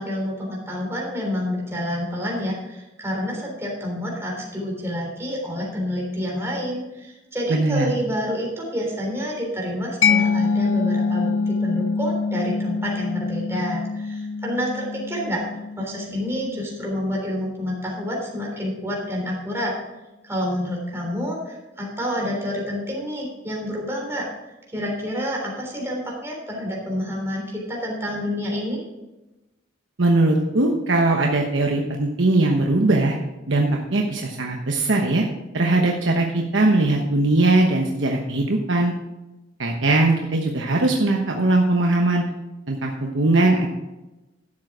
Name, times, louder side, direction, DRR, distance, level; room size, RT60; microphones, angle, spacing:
voice 1, 0.0-15.5 15.8-19.7 20.2-24.3 24.7-28.8, equal, 15° right, -2 dB, 3.5 m, -28 dB
voice 2, 7.5-7.9 30.0-33.2 33.5-35.2 35.5-38.9 39.6-42.2 42.7-43.7, right 2 dB, 75° right, 1 dB, 1.1 m, -20 dB
Mallet percussion, 10.0-17.4, left 4 dB, 80° left, 0.7 m, -25 dB
12.0 x 7.6 x 4.8 m, 1.0 s
head